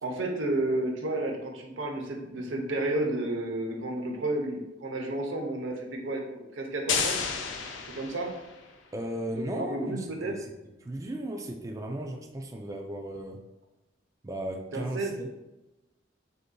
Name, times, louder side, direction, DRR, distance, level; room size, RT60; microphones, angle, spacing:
voice 1, 0.0-7.2 7.9-8.3 9.5-10.3 14.7-15.2, right 2 dB, 90° right, 1 dB, 0.8 m, -31 dB
sound 1, 6.9-8.7, left 6 dB, 80° left, 0.5 m, -31 dB
voice 2, 8.9-10.5 10.8-13.4 14.2-15.3, right 1 dB, 15° right, 3 dB, 0.3 m, -36 dB
6.4 x 2.7 x 2.3 m, 1.0 s
head